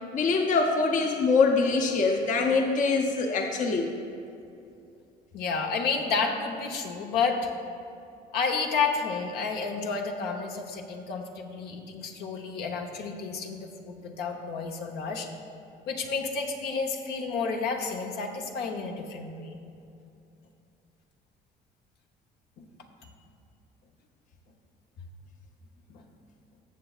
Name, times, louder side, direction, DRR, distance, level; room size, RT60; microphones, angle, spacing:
voice 1, 0.1-3.9, left 4 dB, 50° left, 2 dB, 0.7 m, -24 dB
voice 2, 5.3-7.5 8.3-15.3 15.9-19.6 25.9-26.0, left 5 dB, 75° left, 2 dB, 0.9 m, -31 dB
15.0 x 6.9 x 2.4 m, 2.6 s
cardioid pair, 110°, 17 cm